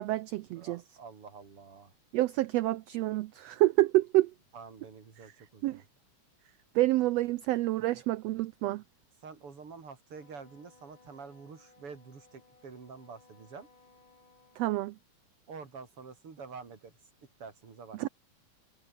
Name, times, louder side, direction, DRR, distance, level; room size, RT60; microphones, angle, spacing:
voice 1, 0.0-0.8 2.1-4.3 5.6-5.8 6.7-8.8 14.6-14.9 18.0-18.1, right 17 dB, 80° right, 1.5 m, -28 dB
voice 2, 0.5-1.9 4.5-5.9 7.9-8.0 9.2-13.7 15.5-16.9 17.4-18.0, right 5 dB, 45° right, 4.2 m, -48 dB
Wind instrument woodwind instrument, 10.1-14.6, left 3 dB, 80° left, 8.9 m, -62 dB
omnidirectional pair, 3.4 m